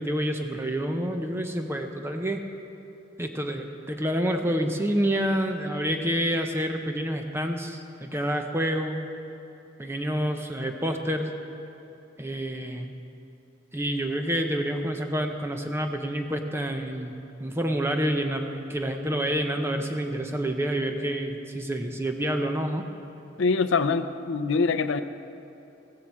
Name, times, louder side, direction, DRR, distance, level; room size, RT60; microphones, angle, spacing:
voice 1, 0.0-2.4 3.2-9.1 9.8-11.3 12.2-12.9 13.7-22.8, equal, 10° right, 4 dB, 0.7 m, -28 dB
voice 2, 23.4-25.0, left 4 dB, 70° left, 11 dB, 0.5 m, -24 dB
15.5 x 7.5 x 7.5 m, 2.8 s
head